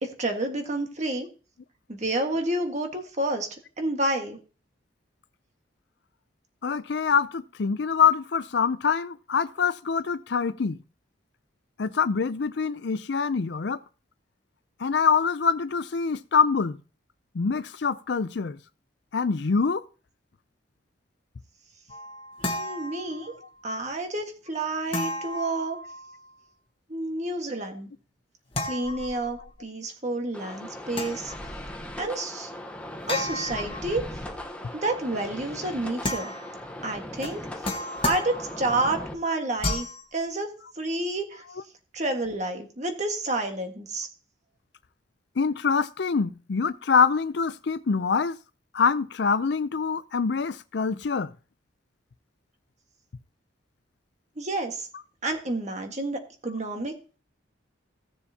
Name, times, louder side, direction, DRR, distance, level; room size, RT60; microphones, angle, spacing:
voice 1, 0.0-1.3 1.9-3.5 3.8-4.4 22.5-23.3 23.6-25.8 26.9-27.9 28.6-31.3 32.0-32.5 33.1-34.0 34.7-36.3 36.8-37.4 38.0-39.9 40.1-40.5 40.8-41.4 41.9-44.1 54.4-54.9 55.2-57.2, right 2 dB, 35° right, 1.6 m, -29 dB
voice 2, 6.6-10.8 11.8-13.8 14.8-16.8 17.3-18.6 19.1-19.8 22.9-23.2 45.4-48.4 48.7-51.3, left 5 dB, 60° left, 0.5 m, -25 dB
sound 1, 21.9-23.5 24.9-26.3 28.5-29.6 30.9-32.0 33.1-34.5 36.0-36.7 37.2-38.8 39.6-40.0, left 2 dB, 30° left, 1.4 m, -33 dB
sound 2, 30.3-39.1, left 1 dB, 5° left, 1.0 m, -39 dB
16.5 x 7.0 x 2.8 m
head